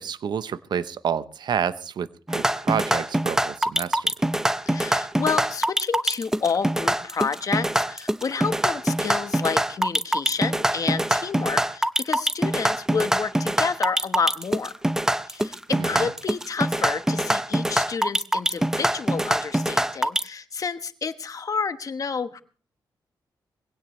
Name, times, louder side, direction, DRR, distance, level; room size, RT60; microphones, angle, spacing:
voice 1, 0.0-4.1 15.8-16.1, right 8 dB, 65° right, 14 dB, 0.8 m, -29 dB
sound 1, 2.3-20.2, right 1 dB, 5° right, 0.6 m, -23 dB
voice 2, 4.7-14.7 15.3-22.4, left 5 dB, 45° left, 10 dB, 1.2 m, -29 dB
22.0 x 16.5 x 3.2 m, 0.40 s
cardioid pair, 115°, 8 cm